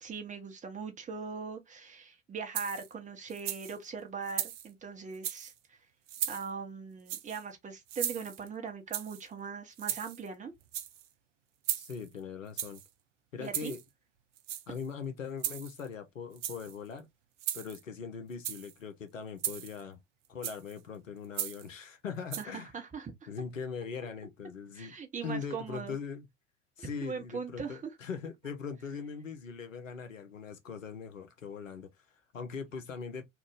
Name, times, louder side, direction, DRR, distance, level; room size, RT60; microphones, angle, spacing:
voice 1, 0.0-5.8 6.3-10.5 13.4-13.7 22.4-23.3 24.7-26.0 26.8-27.9, right 5 dB, 20° right, 0.9 m, -40 dB
sound 1, 2.5-2.9 3.3-3.8 4.3-4.7 5.1-5.5 6.1-6.5 7.1-7.4 7.9-8.5 8.9-9.2 9.8-10.3 10.6-11.1 11.6-12.1 12.6-12.9 13.4-13.8 14.4-14.9 15.4-15.9 16.3-16.7 17.4-17.8 18.3-18.7 19.4-19.8 20.4-20.7 21.3-21.7 22.3-22.4, right 11 dB, 65° right, 0.6 m, -37 dB
voice 2, 11.8-12.8 13.3-13.8 14.7-17.1 17.5-20.0 20.3-22.7 23.3-24.9 25.2-26.3 26.8-33.2, left 6 dB, 80° left, 0.8 m, -41 dB
2.9 x 2.5 x 3.5 m
figure-of-eight pair, 75°, 38 cm